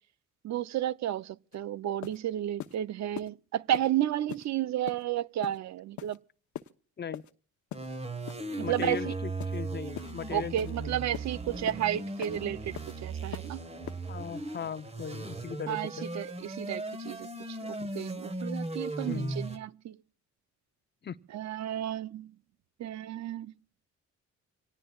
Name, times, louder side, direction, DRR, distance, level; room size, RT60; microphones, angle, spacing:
voice 1, 0.4-6.2 8.5-9.1 10.3-13.6 15.7-20.0 21.3-22.3 22.8-23.5, right 12 dB, 65° right, 0.6 m, -32 dB
sound 1, 1.5-1.6 2.0-2.2 2.6-2.8 3.2-3.3 3.7-3.9 4.3-4.5 4.9-5.0 5.4-5.6 6.0-6.2 6.6-6.7 7.1-7.3 7.7-7.9 8.3-8.5 8.8-9.0 9.4-9.6 10.0-10.1 10.6-10.7 11.1-11.3 11.7-11.8 12.2-12.4 12.8-12.9 13.3-13.5 13.9-14.0, left 11 dB, 70° left, 1.0 m, -41 dB
sound 2, 7.7-19.6, right 2 dB, 20° right, 1.5 m, -37 dB
voice 2, 8.6-11.0 14.1-16.1 17.8-17.9 19.0-19.4 21.0-21.2, left 7 dB, 35° left, 0.8 m, -38 dB
26.0 x 18.0 x 2.4 m
cardioid pair, 90°, 30 cm